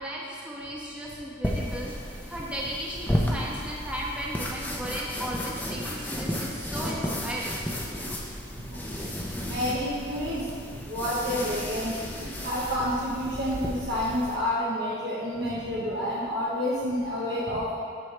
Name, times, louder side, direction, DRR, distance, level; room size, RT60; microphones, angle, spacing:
voice 1, 0.0-1.9 2.3-7.6 7.8-8.1, equal, 5° right, -5 dB, 1.2 m, -35 dB
sound 1, 1.4-14.4, equal, 10° left, 0.8 m, -33 dB
voice 2, 9.4-10.4 10.7-17.7, left 1 dB, 65° right, -7 dB, 1.2 m, -29 dB
14.0 x 4.8 x 3.3 m, 2.2 s
head